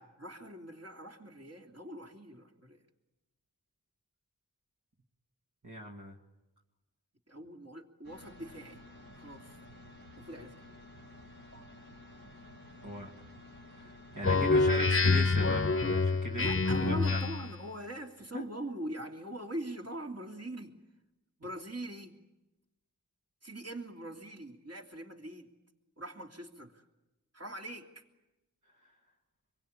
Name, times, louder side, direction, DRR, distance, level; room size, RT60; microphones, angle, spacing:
voice 1, 0.0-2.8 7.3-8.8 9.1-9.6 10.2-10.5 11.5-11.6 16.3-20.8 21.4-22.1 23.4-25.5 26.0-26.9 27.3-28.0, right 1 dB, 45° right, 1 dB, 3.0 m, -43 dB
voice 2, 5.6-6.1 12.8-13.1 13.8-16.5 16.8-17.2 18.3-18.4 28.8-28.9, equal, 60° right, -1 dB, 2.3 m, -38 dB
sound 1, 8.0-15.5, left 1 dB, 90° right, 6.5 m, -52 dB
Speech synthesizer, 14.2-17.6, left 3 dB, 40° left, 0.9 m, -27 dB
26.5 x 22.5 x 8.8 m, 1.0 s
wide cardioid pair, 40°, 34 cm